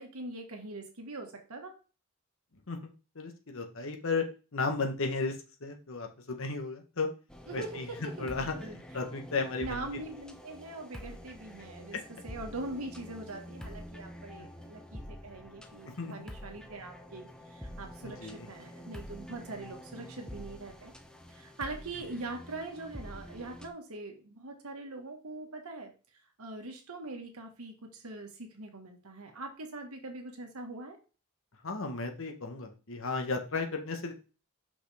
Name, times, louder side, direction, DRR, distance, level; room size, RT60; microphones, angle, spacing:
voice 1, 0.0-1.7 7.5-8.8 9.6-12.0 12.2-20.9 21.3-25.9 26.4-31.0, right 2 dB, 85° right, 3 dB, 1.6 m, -42 dB
voice 2, 2.7-4.3 4.5-5.4 5.6-7.1 7.5-7.9 8.2-9.9 11.9-12.0 14.4-14.5 15.9-16.1 18.0-18.5 18.8-18.9 31.6-34.1, left 3 dB, 65° left, 4 dB, 1.2 m, -34 dB
sound 1, 7.3-23.7, equal, 5° left, 0.7 m, -47 dB
5.8 x 5.3 x 3.4 m, 0.34 s
head